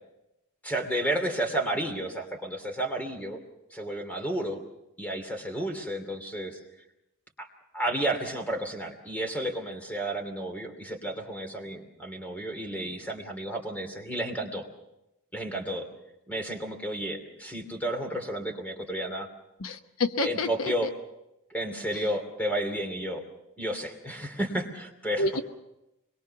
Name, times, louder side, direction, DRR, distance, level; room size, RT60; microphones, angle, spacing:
voice 1, 0.6-3.4 3.7-4.6 5.0-6.6 7.4-7.5 7.7-14.7 15.3-15.9 16.3-19.3 20.2-20.9 21.5-23.2 23.6-25.3, right 1 dB, 5° left, 4 dB, 2.8 m, -32 dB
voice 2, 19.6-20.7 25.2-25.4, left 2 dB, 75° left, 8 dB, 1.0 m, -28 dB
25.0 x 22.0 x 5.8 m, 0.90 s
head